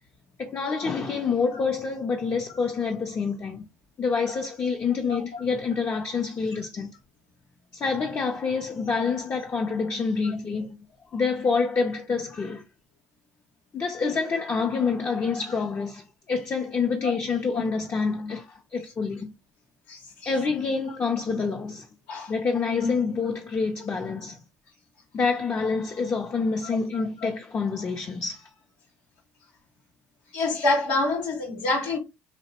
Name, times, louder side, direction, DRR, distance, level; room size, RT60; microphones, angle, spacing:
voice 1, 0.4-3.7 4.0-6.9 7.7-10.8 11.1-12.6 13.7-19.3 20.2-21.8 22.3-24.4 25.1-28.5, left 5 dB, 40° left, 0.5 m, -27 dB
voice 2, 5.1-5.4 17.0-17.4 19.9-20.3 22.1-22.3 22.8-22.9 30.3-32.0, left 2 dB, 85° left, 0.9 m, -27 dB
2.7 x 2.1 x 2.8 m
hypercardioid pair, 60°, 7 cm